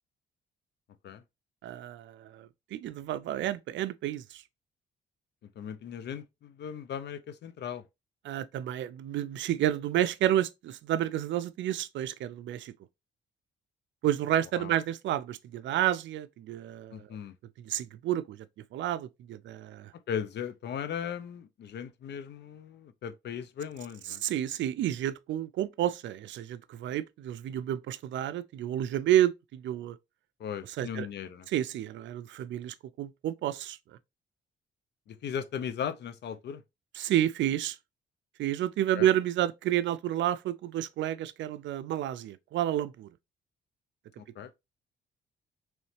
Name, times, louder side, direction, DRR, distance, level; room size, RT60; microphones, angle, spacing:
voice 1, 1.6-4.4 8.2-12.7 14.0-17.1 17.6-18.5 18.7-19.9 24.2-30.0 30.8-31.1 31.5-33.8 36.9-37.8 38.4-43.1, right 12 dB, 70° right, 0.4 m, -30 dB
voice 2, 5.6-7.8 14.5-14.8 16.9-17.3 20.1-24.2 30.4-31.5 35.1-36.6 38.9-39.1 44.2-44.5, left 8 dB, 60° left, 0.6 m, -37 dB
4.0 x 3.1 x 3.1 m
cardioid pair, 90°, 20 cm